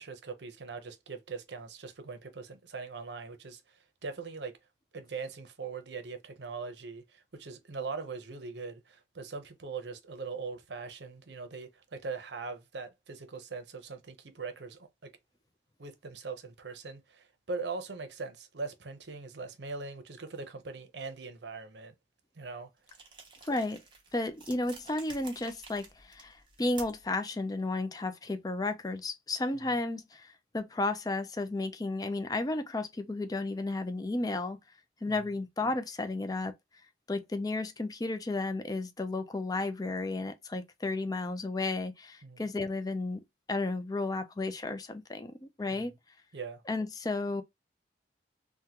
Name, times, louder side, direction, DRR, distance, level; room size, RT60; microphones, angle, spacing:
voice 1, 0.0-4.6 4.9-15.1 15.8-21.9 22.3-22.7 42.2-42.4 45.7-45.9 46.3-46.6, right 4 dB, 75° right, 0.7 m, -41 dB
sound 1, 22.8-27.2, right 4 dB, 25° right, 0.9 m, -51 dB
voice 2, 23.4-23.8 24.1-34.6 35.0-36.5 37.1-43.2 43.5-45.9 46.7-47.4, left 2 dB, 20° left, 0.4 m, -33 dB
3.6 x 2.2 x 2.8 m
head